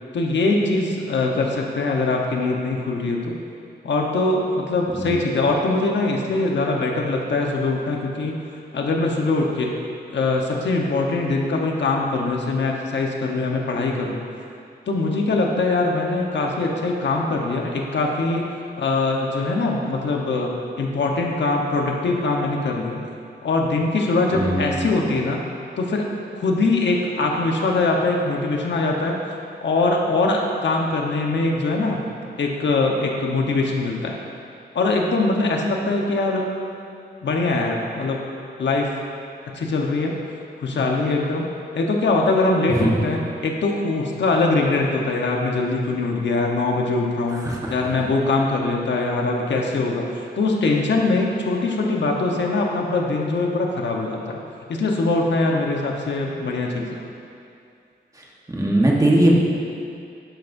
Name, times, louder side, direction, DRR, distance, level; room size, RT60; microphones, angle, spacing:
voice 1, 0.1-3.3 3.8-8.4 8.7-9.7 10.1-14.3 14.9-18.4 18.8-23.0 23.4-25.4 25.8-26.0 26.4-29.2 29.6-32.0 32.4-34.2 34.7-36.5 37.2-38.2 38.6-38.9 39.5-40.1 40.6-41.5 41.7-54.4 54.7-57.0, left 3 dB, 85° left, 0 dB, 1.2 m, -22 dB
voice 2, 24.3-24.9 42.8-42.9 47.4-47.7 58.5-59.3, right 1 dB, 20° right, -3 dB, 1.3 m, -19 dB
12.0 x 10.5 x 2.7 m, 2.5 s
wide cardioid pair, 165°, 18 cm